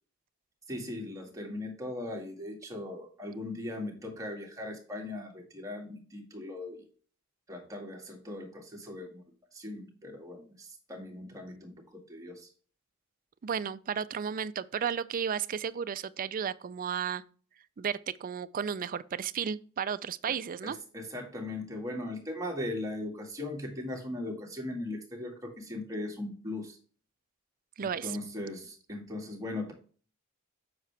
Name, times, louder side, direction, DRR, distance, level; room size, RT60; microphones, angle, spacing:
voice 1, 0.7-6.8 7.5-9.2 9.5-12.5 20.6-26.8 27.8-29.7, left 1 dB, 15° right, 1.9 m, -39 dB
voice 2, 13.4-17.2 17.8-20.8 27.8-28.2, right 7 dB, 40° right, 0.4 m, -33 dB
7.7 x 5.7 x 3.3 m
head